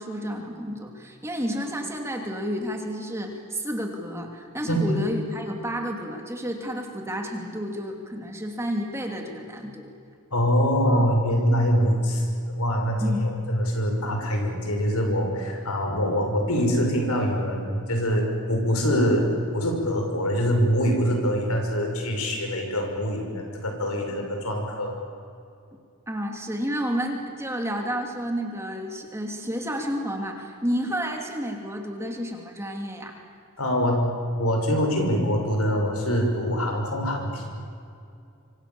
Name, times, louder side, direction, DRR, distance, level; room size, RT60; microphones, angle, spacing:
voice 1, 0.0-9.9 10.9-11.1 13.0-13.2 26.1-33.1, equal, 10° right, 2 dB, 2.8 m, -31 dB
voice 2, 10.3-24.9 33.6-34.1 34.4-37.5, equal, 90° left, 2 dB, 6.3 m, -24 dB
26.0 x 26.0 x 7.2 m, 2.5 s
head